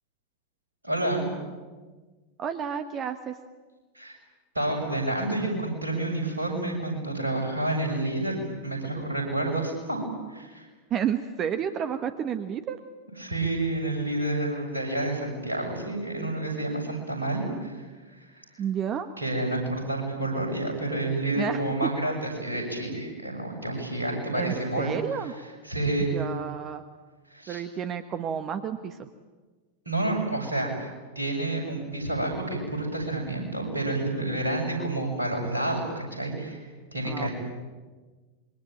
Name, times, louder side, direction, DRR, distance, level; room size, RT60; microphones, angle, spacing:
voice 1, 0.8-1.3 4.0-4.1 4.5-10.7 13.2-17.8 18.1-18.3 19.2-24.9 25.6-26.1 27.3-27.6 29.9-30.9 31.2-37.3, right 2 dB, 80° right, 1 dB, 7.3 m, -29 dB
voice 2, 2.4-3.4 10.9-12.8 18.6-19.1 21.3-21.9 24.3-25.3 26.1-26.8 27.5-29.1 37.0-37.3, right 8 dB, 30° right, 10 dB, 1.3 m, -31 dB
27.0 x 23.0 x 9.0 m, 1.3 s
figure-of-eight pair, 90°, 0 cm